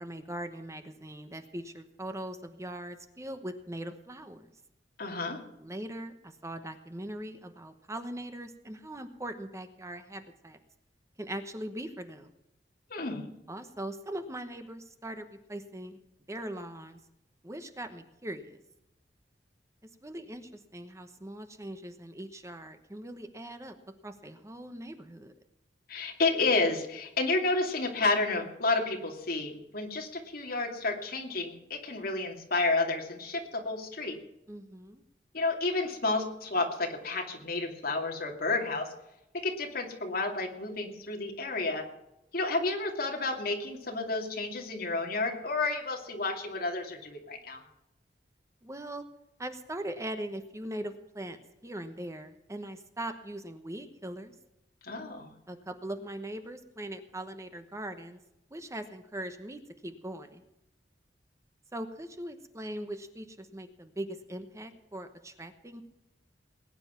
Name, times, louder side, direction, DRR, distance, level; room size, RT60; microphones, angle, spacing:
voice 1, 0.0-4.5 5.6-10.6 11.2-12.3 13.5-16.0 16.3-17.0 17.4-18.6 20.0-23.7 24.0-25.3 34.5-35.0 48.6-49.0 49.4-54.3 55.5-58.2 58.5-60.4 61.7-65.8, right 1 dB, 15° right, 8 dB, 1.0 m, -40 dB
voice 2, 5.0-5.4 12.9-13.2 25.9-34.1 35.3-38.9 39.3-41.8 42.3-47.6 54.8-55.3, left 3 dB, 60° left, 2 dB, 2.7 m, -31 dB
20.0 x 9.7 x 5.8 m, 0.88 s
head